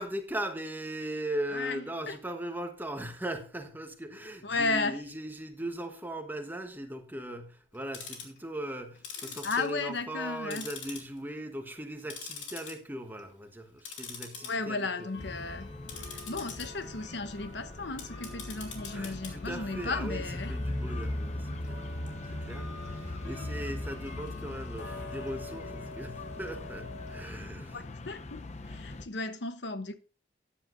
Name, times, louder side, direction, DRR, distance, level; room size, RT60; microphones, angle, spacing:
voice 1, 0.0-14.9 18.9-21.8 22.2-27.9, right 1 dB, 10° right, 1.2 m, -39 dB
voice 2, 1.5-2.2 4.4-5.0 9.2-10.7 14.4-15.7 16.1-20.6 27.7-30.0, left 3 dB, 65° left, 1.0 m, -34 dB
Tick-tock, 7.7-8.4 8.9-10.2 10.5-11.4 11.7-12.7 13.1-13.4 13.8-27.2, left 4 dB, 90° left, 2.9 m, -45 dB
sound 1, 15.2-29.1, left 1 dB, 35° left, 0.7 m, -39 dB
14.0 x 10.0 x 2.6 m
head